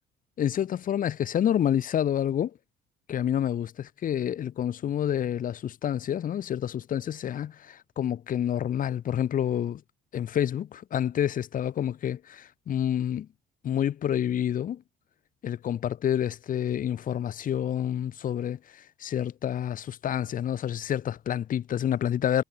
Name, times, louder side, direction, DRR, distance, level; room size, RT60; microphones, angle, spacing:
voice 1, 0.4-2.6 3.1-9.8 10.1-13.3 13.6-14.8 15.4-22.4, left 10 dB, 55° left, 3.6 m, -28 dB
cardioid pair, 110°, 17 cm